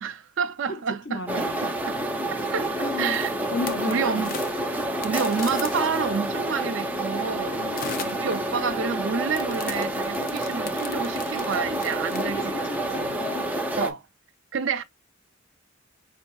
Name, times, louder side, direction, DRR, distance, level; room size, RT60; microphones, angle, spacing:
voice 1, 0.0-2.0 2.3-3.3 3.8-4.3 5.0-7.6 8.1-13.2 13.7-14.0 14.5-14.8, right 5 dB, 65° right, 0.5 m, -29 dB
voice 2, 1.0-1.6 2.8-3.2 3.5-4.4 7.6-8.3 12.2-13.7, left 2 dB, 60° left, 0.9 m, -34 dB
sound 1, 1.3-13.9, right 1 dB, 10° right, 0.5 m, -29 dB
sound 2, 2.4-6.5 7.7-8.6 9.3-12.2, left 5 dB, 45° left, 0.5 m, -38 dB
5.4 x 2.7 x 2.3 m
head